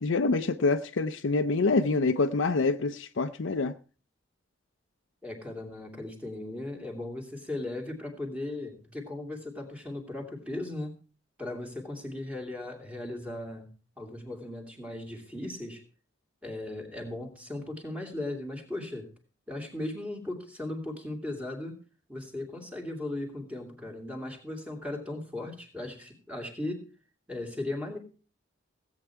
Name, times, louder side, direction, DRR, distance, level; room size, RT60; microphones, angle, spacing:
voice 1, 0.0-3.7, left 3 dB, 75° left, 0.6 m, -26 dB
voice 2, 5.2-10.9 11.4-13.7 14.0-15.8 16.4-19.1 19.5-21.8 22.1-26.9 27.3-28.0, left 2 dB, 5° right, 2.7 m, -37 dB
17.0 x 8.4 x 4.5 m
head